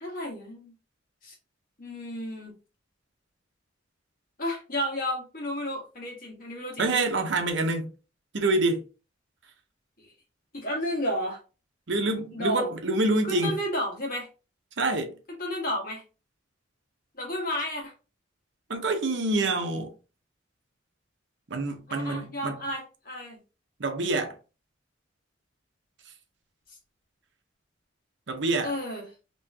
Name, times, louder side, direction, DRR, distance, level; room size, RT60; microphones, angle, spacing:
voice 1, 0.0-0.7 1.2-1.3 1.8-2.5 4.4-6.9 10.0-10.1 10.5-11.4 12.3-12.7 13.3-14.3 15.3-16.0 17.1-17.9 21.9-23.4 28.6-29.1, equal, 45° left, 1.5 m, -32 dB
voice 2, 6.8-7.9 8.3-8.8 11.9-13.5 14.8-15.2 18.7-19.9 21.5-22.6 23.8-24.3 28.3-28.7, right 2 dB, 65° right, 0.7 m, -26 dB
3.1 x 3.0 x 3.4 m
head